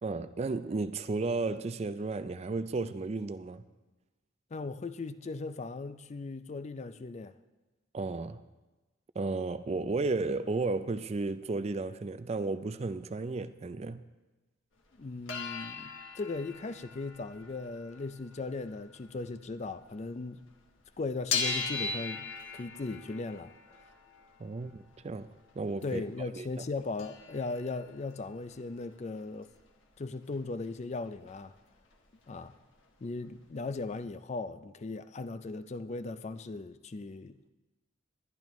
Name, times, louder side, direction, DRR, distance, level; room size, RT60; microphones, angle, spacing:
voice 1, 0.0-3.6 7.9-8.4 9.2-14.0 24.4-26.0 26.3-26.5, right 3 dB, 30° right, 0.4 m, -33 dB
voice 2, 4.5-7.4 15.0-20.4 21.0-23.8 25.8-29.5 30.0-31.5 32.3-32.5 33.0-37.5, left 3 dB, 35° left, 0.4 m, -38 dB
sound 1, 15.0-20.2 20.5-26.1 26.5-26.6 26.8-30.7 31.0-31.9 32.2-32.3 32.6-33.6 34.0-34.1, left 5 dB, 80° left, 1.3 m, -40 dB
21.5 x 10.5 x 3.1 m
head